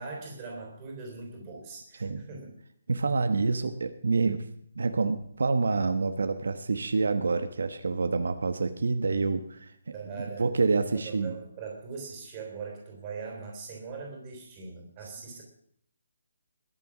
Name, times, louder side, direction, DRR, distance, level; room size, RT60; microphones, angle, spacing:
voice 1, 0.0-2.5 9.9-10.5 10.9-15.4, right 4 dB, 15° right, 0 dB, 3.4 m, -41 dB
voice 2, 2.9-4.4 4.8-9.7 10.4-11.4, right 4 dB, 75° right, 9 dB, 1.2 m, -27 dB
21.0 x 7.0 x 6.1 m, 0.67 s
hypercardioid pair, 175°, 0 cm